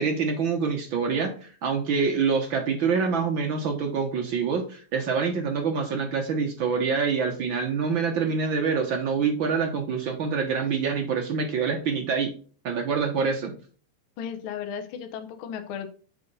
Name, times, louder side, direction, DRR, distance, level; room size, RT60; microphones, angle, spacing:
voice 1, 0.0-12.3 12.6-13.6, right 5 dB, 75° right, 3 dB, 1.1 m, -26 dB
voice 2, 14.2-15.9, left 8 dB, 85° left, 5 dB, 1.1 m, -35 dB
6.9 x 4.7 x 5.4 m, 0.40 s
omnidirectional pair, 3.6 m